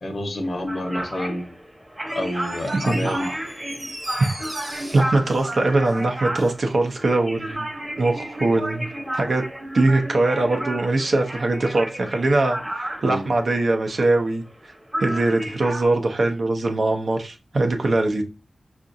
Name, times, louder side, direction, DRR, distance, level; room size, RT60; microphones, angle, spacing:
voice 1, 0.0-1.5 2.1-3.3 13.0-13.3, left 1 dB, 70° left, 0.8 m, -28 dB
sound 1, 0.7-14.7 14.9-15.9, right 1 dB, 15° right, 0.8 m, -32 dB
Door, 2.0-6.6 6.9-7.0, right 1 dB, 30° right, 1.0 m, -39 dB
voice 2, 2.9-3.4 4.1-4.3 4.9-7.7 8.0-8.9 9.1-9.4 9.7-14.4 15.0-18.2, right 2 dB, 65° right, 0.6 m, -21 dB
4.7 x 2.5 x 2.6 m
wide cardioid pair, 75°, 0 cm